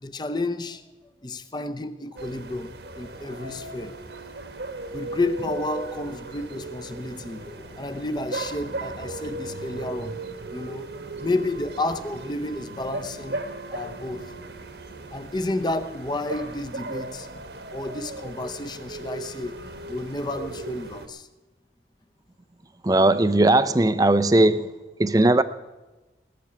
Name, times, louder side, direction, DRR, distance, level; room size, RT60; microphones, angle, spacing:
voice 1, 0.0-0.8 1.2-4.0 4.9-10.2 10.5-13.4 13.7-14.2 15.1-17.4 17.7-21.3, left 2 dB, 25° left, 0.7 m, -31 dB
sound 1, 2.2-21.1, right 2 dB, 65° right, 1.3 m, -37 dB
voice 2, 22.8-24.7 25.0-25.4, right 2 dB, 20° right, 0.5 m, -18 dB
18.5 x 6.9 x 8.7 m
head